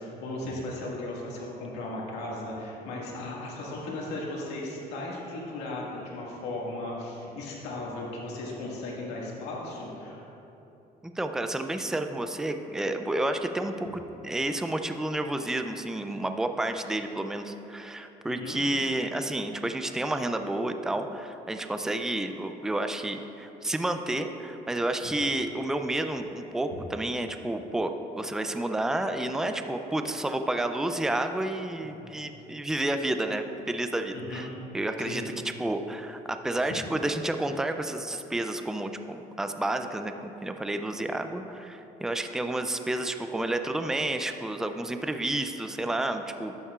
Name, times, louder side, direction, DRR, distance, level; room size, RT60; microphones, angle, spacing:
voice 1, 0.0-10.2 18.3-18.6 32.0-32.1 34.1-34.5 35.0-35.2, left 2 dB, 90° left, -4 dB, 1.9 m, -36 dB
voice 2, 11.0-34.5 34.7-35.2 35.6-46.6, right 1 dB, 5° right, 7 dB, 0.4 m, -30 dB
12.0 x 8.5 x 2.4 m, 3.0 s
cardioid pair, 110°, 17 cm